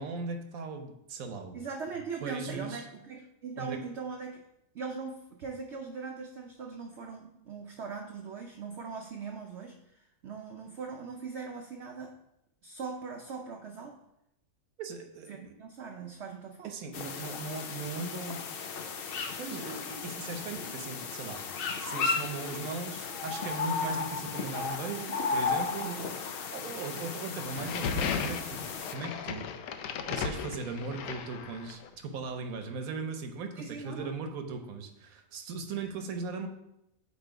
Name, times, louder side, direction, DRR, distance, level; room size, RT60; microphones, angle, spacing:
voice 1, 0.0-1.6 2.2-2.9 3.6-3.8 14.8-15.6 16.6-18.4 19.4-21.4 21.8-25.9 26.5-29.5 30.1-36.5, right 4 dB, 75° right, 6 dB, 1.2 m, -38 dB
voice 2, 1.5-4.4 4.7-9.8 10.2-12.1 12.6-14.0 15.3-16.7 25.8-26.1 27.0-27.1 30.5-30.6 33.6-34.1, right 5 dB, 60° right, 1 dB, 0.8 m, -40 dB
sound 1, 16.9-28.9, left 5 dB, 60° left, 0.6 m, -35 dB
sound 2, 27.6-31.9, left 6 dB, 85° left, 1.1 m, -35 dB
8.3 x 3.0 x 4.6 m, 0.84 s
omnidirectional pair, 1.5 m